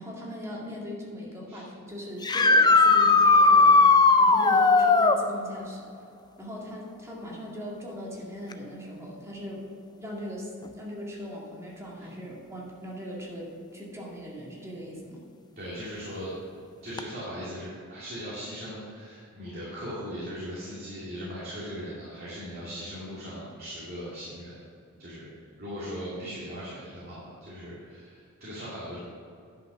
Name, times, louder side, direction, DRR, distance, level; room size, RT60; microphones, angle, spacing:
voice 1, 0.0-5.9 6.4-9.6 10.0-10.5 10.8-15.2 26.2-26.4, equal, 15° right, -4 dB, 2.2 m, -39 dB
sound 1, 2.2-5.2 8.5-8.6 10.7-10.8 17.0-17.1, left 3 dB, 20° left, 0.4 m, -18 dB
voice 2, 15.6-16.3 16.8-24.6 25.0-25.3 25.6-29.0, equal, 45° right, -9 dB, 2.6 m, -39 dB
10.5 x 5.8 x 5.8 m, 2.4 s
head